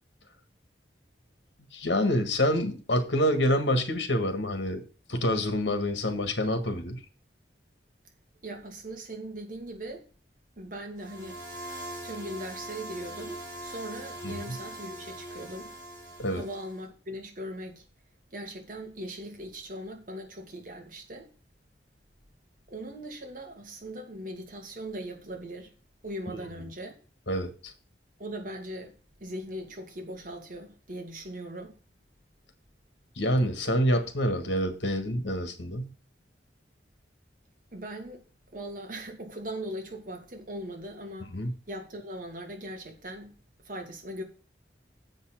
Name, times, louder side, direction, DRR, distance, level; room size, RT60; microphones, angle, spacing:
voice 1, 1.7-4.8 5.1-7.0 14.2-14.3 16.2-16.4 27.3-27.7 33.2-35.9 41.3-41.5, equal, 75° left, 1.7 m, -27 dB
voice 2, 8.4-10.1 10.6-11.4 12.0-15.7 16.3-17.8 18.3-21.3 22.7-25.7 26.0-26.9 28.2-28.9 29.2-31.8 37.7-38.2 38.5-41.4 41.7-43.4 43.6-44.2, right 1 dB, 45° right, 2.4 m, -39 dB
sound 1, 11.0-16.8, right 1 dB, 60° right, 4.8 m, -42 dB
7.6 x 5.6 x 7.5 m
head